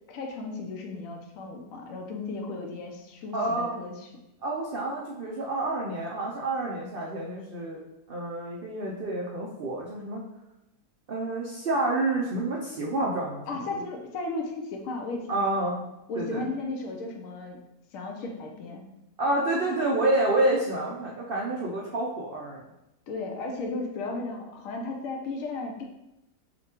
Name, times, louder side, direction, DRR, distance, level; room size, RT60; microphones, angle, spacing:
voice 1, 0.1-4.1 13.5-15.3 16.1-17.6 17.9-18.8 23.1-25.8, left 3 dB, 65° left, 2 dB, 1.0 m, -35 dB
voice 2, 3.3-3.8 4.4-7.8 8.1-10.2 11.1-13.4 15.3-15.8 16.1-16.5 19.2-22.6, right 2 dB, 80° right, -3 dB, 0.5 m, -28 dB
6.5 x 2.2 x 2.9 m, 0.91 s
omnidirectional pair, 1.7 m